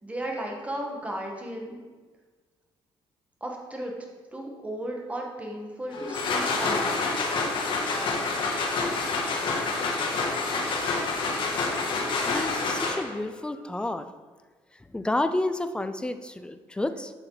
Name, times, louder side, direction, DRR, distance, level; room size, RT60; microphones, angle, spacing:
voice 1, 0.0-1.8 3.4-3.9 4.3-7.0, right 1 dB, 15° right, 0 dB, 1.8 m, -35 dB
sound 1, 5.9-13.3, left 3 dB, 60° left, 1.7 m, -27 dB
voice 2, 12.3-14.1 14.9-17.1, left 2 dB, 10° left, 10 dB, 0.5 m, -30 dB
11.0 x 7.0 x 4.1 m, 1.4 s
cardioid pair, 125°, 10 cm